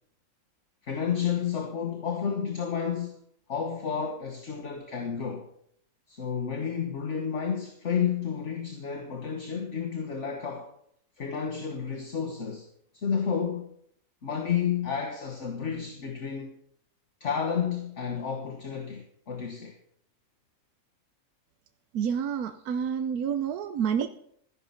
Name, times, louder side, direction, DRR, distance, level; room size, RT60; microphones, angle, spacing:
voice 1, 0.8-3.2 3.5-5.5 6.1-10.7 11.2-12.7 12.9-13.7 14.2-16.5 17.2-19.8, left 7 dB, 55° left, 1.7 m, -31 dB
voice 2, 21.9-24.1, right 7 dB, 80° right, 1.3 m, -28 dB
14.5 x 10.5 x 5.8 m
omnidirectional pair, 1.6 m